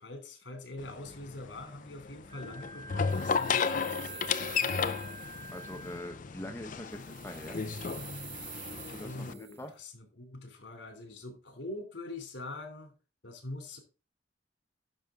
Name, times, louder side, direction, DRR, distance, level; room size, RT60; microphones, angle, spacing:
voice 1, 0.0-4.7 9.0-12.9 13.2-13.8, left 2 dB, 85° left, 3.0 m, -44 dB
sound 1, 0.8-9.3, left 5 dB, 45° left, 0.5 m, -34 dB
Wind instrument woodwind instrument, 2.3-6.1, right 2 dB, 20° right, 2.7 m, -48 dB
sound 2, 3.1-5.9 6.9-9.6, right 8 dB, 35° right, 1.0 m, -48 dB
voice 2, 5.5-7.6 8.7-9.7, left 1 dB, 15° left, 0.9 m, -43 dB
10.5 x 6.3 x 3.6 m
head